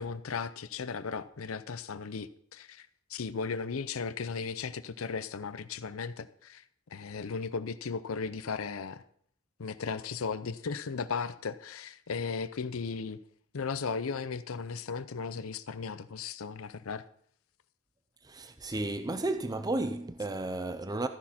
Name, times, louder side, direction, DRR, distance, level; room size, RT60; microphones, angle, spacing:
voice 1, 0.0-6.6 6.9-9.0 9.6-13.2 13.5-17.0, left 5 dB, 80° left, 0.6 m, -36 dB
voice 2, 18.3-21.1, right 2 dB, 20° right, 0.6 m, -33 dB
14.0 x 10.0 x 4.3 m
head